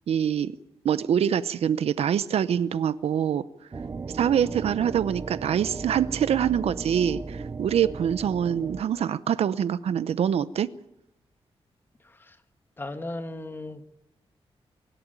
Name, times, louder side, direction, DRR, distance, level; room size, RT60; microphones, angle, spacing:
voice 1, 0.1-0.6 0.8-3.4 4.1-10.7, right 9 dB, 90° right, 16 dB, 0.7 m, -25 dB
sound 1, 3.7-8.8, right 4 dB, 30° right, 0.7 m, -36 dB
voice 2, 12.0-12.4 12.8-13.8, left 2 dB, 20° left, 8 dB, 1.6 m, -36 dB
24.0 x 12.0 x 9.0 m, 0.86 s
wide cardioid pair, 150°, 10 cm